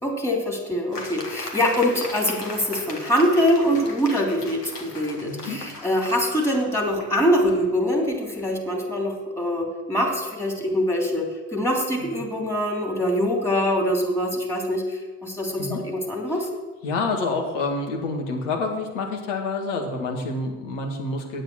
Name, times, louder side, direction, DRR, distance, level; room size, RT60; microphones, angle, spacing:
voice 1, 0.0-16.5, equal, 5° left, 0 dB, 3.0 m, -24 dB
sound 1, 0.9-7.3, left 2 dB, 90° left, 1.1 m, -38 dB
voice 2, 5.3-5.6 12.2-12.3 15.6-15.8 16.8-21.4, left 3 dB, 65° left, 2 dB, 1.9 m, -28 dB
9.1 x 8.0 x 6.2 m, 1.3 s
figure-of-eight pair, 50°, 46 cm